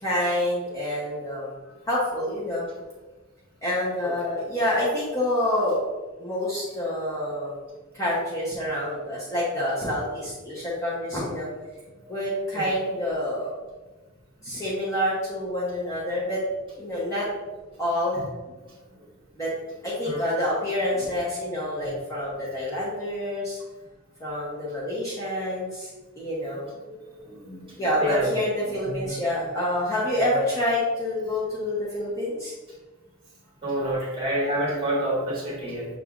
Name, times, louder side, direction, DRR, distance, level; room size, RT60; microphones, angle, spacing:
voice 1, 0.0-1.5 1.9-2.7 3.6-5.8 6.2-7.5 7.9-11.5 12.1-13.5 14.4-16.4 16.8-17.3 17.8-18.2 19.4-19.5 19.8-23.6 24.2-25.9 26.2-26.7 27.8-32.5, left 1 dB, 15° left, -7 dB, 0.8 m, -27 dB
voice 2, 26.9-27.6 28.0-28.4 28.9-29.2 33.6-35.8, right 1 dB, 25° right, -6 dB, 1.5 m, -28 dB
6.0 x 3.3 x 2.4 m, 1.3 s
head